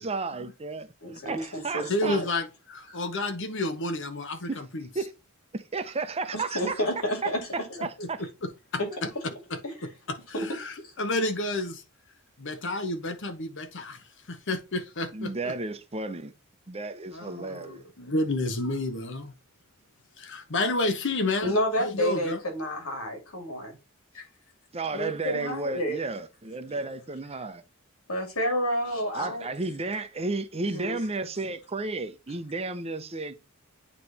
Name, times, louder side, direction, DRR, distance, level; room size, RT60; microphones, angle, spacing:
voice 1, 0.0-0.9 1.2-2.2 4.5-4.6 4.9-5.1 5.5-6.8 7.2-7.3 7.8-8.2 8.9-9.0 15.1-16.3 16.7-17.9 24.7-27.6 29.1-33.3, right 3 dB, 30° right, 0.7 m, -33 dB
voice 2, 1.0-2.2 2.9-3.0 6.3-7.7 8.8-8.9 9.6-9.7 10.3-10.5 21.4-23.7 24.1-24.3 24.9-26.0 28.1-29.5 30.7-31.0, equal, 80° left, 2.5 m, -30 dB
voice 3, 1.9-4.9 7.8-8.1 8.4-8.8 9.5-9.6 10.1-11.8 12.4-15.5 17.1-19.3 20.2-21.5 21.8-22.4, left 2 dB, 60° left, 1.1 m, -30 dB
8.8 x 3.2 x 4.1 m
head